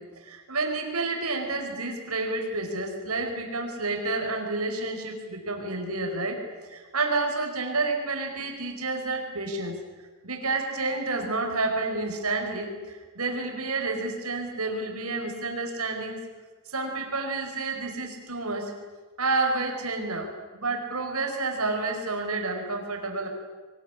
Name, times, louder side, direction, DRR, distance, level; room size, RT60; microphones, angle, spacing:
voice 1, 0.0-9.8 10.2-16.2 16.7-18.7 19.2-23.3, right 3 dB, 80° right, 3 dB, 5.1 m, -30 dB
23.5 x 21.0 x 10.0 m, 1.3 s
head